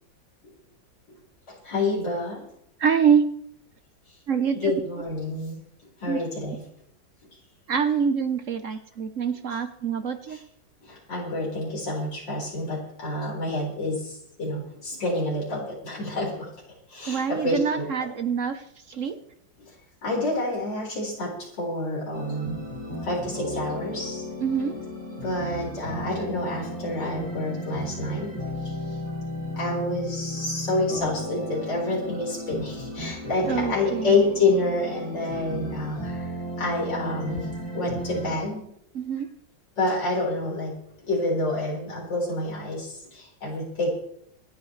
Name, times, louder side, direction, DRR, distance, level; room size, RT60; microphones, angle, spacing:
voice 1, 1.5-2.4 4.5-5.6 6.0-6.6 10.3-10.4 10.8-16.5 16.9-18.1 20.0-22.6 23.0-24.3 25.2-28.3 28.6-28.8 29.6-37.5 37.7-38.7 39.8-40.7 41.1-43.9, left 2 dB, 75° left, -4 dB, 5.4 m, -28 dB
voice 2, 2.8-3.2 4.3-4.7 6.0-6.2 7.7-10.4 17.1-18.6 18.9-19.2 24.4-24.8 33.5-34.1 38.9-39.3, right 7 dB, 55° right, 9 dB, 1.0 m, -25 dB
sound 1, 22.1-38.4, equal, 85° right, 7.6 m, -34 dB
26.0 x 9.6 x 3.3 m, 0.71 s
omnidirectional pair, 2.0 m